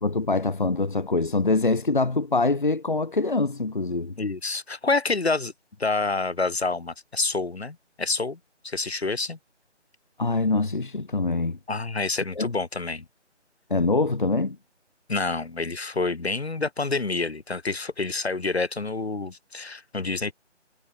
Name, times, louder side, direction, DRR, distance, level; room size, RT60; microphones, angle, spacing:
voice 1, 0.0-4.1 10.2-11.6 12.4-12.5 13.7-14.6, left 3 dB, 45° left, 1.4 m, -24 dB
voice 2, 4.2-5.5 5.8-8.4 8.6-9.4 11.7-13.1 15.1-20.3, left 3 dB, 60° left, 1.8 m, -28 dB
figure-of-eight pair, 180°, 36 cm